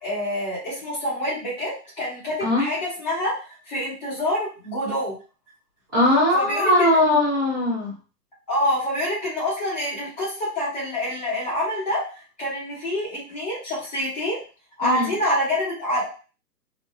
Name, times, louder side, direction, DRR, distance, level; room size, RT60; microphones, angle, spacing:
voice 1, 0.0-3.4 3.7-5.2 6.3-6.9 8.5-12.0 12.4-14.4 14.8-16.1, left 1 dB, 25° left, -7 dB, 1.7 m, -26 dB
voice 2, 5.9-7.9 14.8-15.1, left 1 dB, 15° right, -8 dB, 0.8 m, -20 dB
4.0 x 2.2 x 2.4 m, 0.35 s
hypercardioid pair, 170°, 49 cm